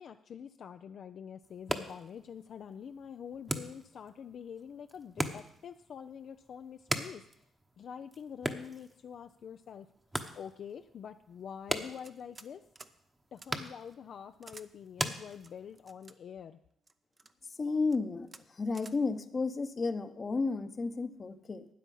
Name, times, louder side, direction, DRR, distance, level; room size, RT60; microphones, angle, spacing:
voice 1, 0.0-7.2 7.8-9.9 10.3-12.6 13.3-16.6, left 7 dB, 60° left, 8 dB, 0.5 m, -46 dB
sound 1, 1.4-15.9, right 1 dB, 15° right, 1.1 m, -41 dB
sound 2, 12.0-12.5 12.8-12.9 13.4-13.5 14.4-14.7 15.4-16.1 16.9-17.3 17.8-18.0 18.3-18.4 18.7-19.0, right 3 dB, 30° right, 0.7 m, -52 dB
voice 2, 17.6-21.7, left 4 dB, 35° left, 10 dB, 0.9 m, -32 dB
13.0 x 8.9 x 5.5 m, 0.72 s
cardioid pair, 90°, 0 cm